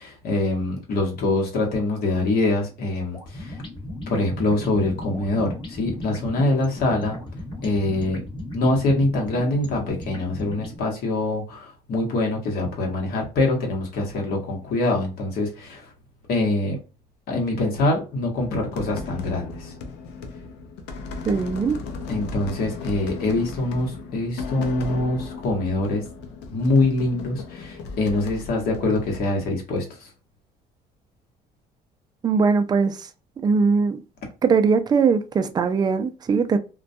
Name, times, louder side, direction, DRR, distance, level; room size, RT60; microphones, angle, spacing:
voice 1, 0.0-3.6 4.1-7.2 7.6-8.2 8.5-15.9 16.3-16.8 17.3-19.7 22.1-26.0 26.5-30.1, left 2 dB, 65° left, 1.0 m, -24 dB
sound 1, 3.1-10.8, left 1 dB, 30° left, 1.0 m, -36 dB
sound 2, 18.4-29.2, left 4 dB, 85° left, 0.5 m, -35 dB
voice 2, 21.3-21.8 32.2-33.1 33.4-34.0 34.4-36.6, right 5 dB, 25° right, 0.3 m, -20 dB
2.2 x 2.2 x 2.6 m
cardioid pair, 110°, 17 cm